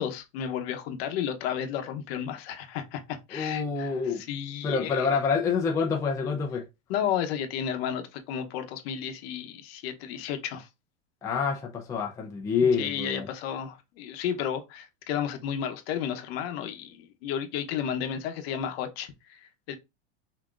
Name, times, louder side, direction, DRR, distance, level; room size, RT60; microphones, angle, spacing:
voice 1, 0.0-5.1 6.9-10.7 12.6-19.8, left 9 dB, 55° left, 0.9 m, -33 dB
voice 2, 3.3-4.2 4.6-6.6 11.2-13.3, left 5 dB, 10° left, 0.4 m, -27 dB
6.0 x 2.8 x 2.4 m
supercardioid pair, 160°, 36 cm